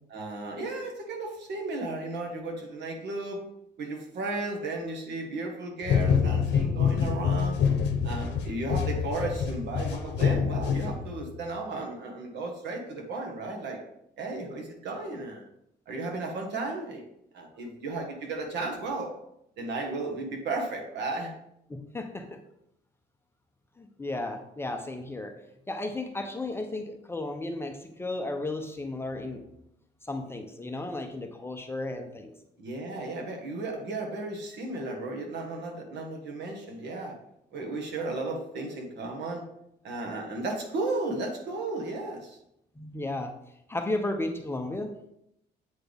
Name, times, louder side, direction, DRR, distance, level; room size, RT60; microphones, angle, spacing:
voice 1, 0.1-3.4 3.8-7.6 8.0-13.8 14.2-15.5 15.9-17.0 17.3-19.1 19.6-21.3 32.6-37.2 37.5-39.5 39.8-42.4, right 2 dB, 70° right, 2 dB, 1.5 m, -34 dB
sound 1, 5.8-11.4, left 7 dB, 70° left, 0.8 m, -26 dB
voice 2, 21.7-22.4 23.8-25.4 25.7-29.4 30.0-32.3 42.8-43.3 43.7-44.9, left 2 dB, 15° left, 4 dB, 0.5 m, -34 dB
7.9 x 4.0 x 3.4 m, 0.77 s
cardioid pair, 140°, 19 cm